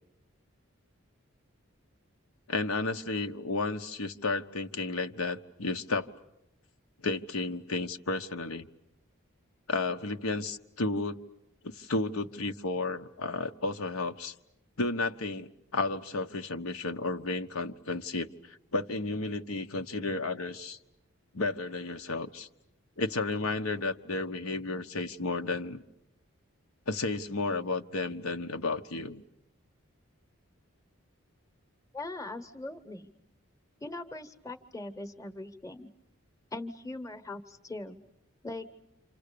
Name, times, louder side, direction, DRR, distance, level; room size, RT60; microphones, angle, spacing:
voice 1, 2.5-6.1 7.0-8.7 9.7-11.2 11.6-14.3 14.8-20.8 21.3-22.5 23.0-25.8 26.9-29.2, left 3 dB, 85° left, 6 dB, 1.0 m, -32 dB
voice 2, 31.9-33.1 33.8-35.9 36.5-38.0 38.4-38.7, left 2 dB, 15° left, 9 dB, 1.0 m, -40 dB
28.5 x 27.0 x 6.8 m, 0.85 s
head